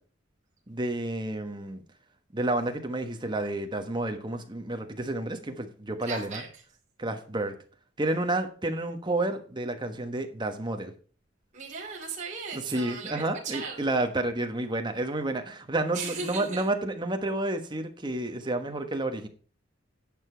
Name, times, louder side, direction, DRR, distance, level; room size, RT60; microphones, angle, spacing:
voice 1, 0.7-1.8 2.3-6.4 7.0-7.6 8.0-10.9 12.5-19.3, right 2 dB, 25° right, 6 dB, 1.3 m, -30 dB
voice 2, 6.0-6.5 11.5-13.8 15.9-16.7, right 5 dB, 40° right, -2 dB, 2.7 m, -37 dB
11.0 x 6.8 x 4.5 m, 0.40 s
head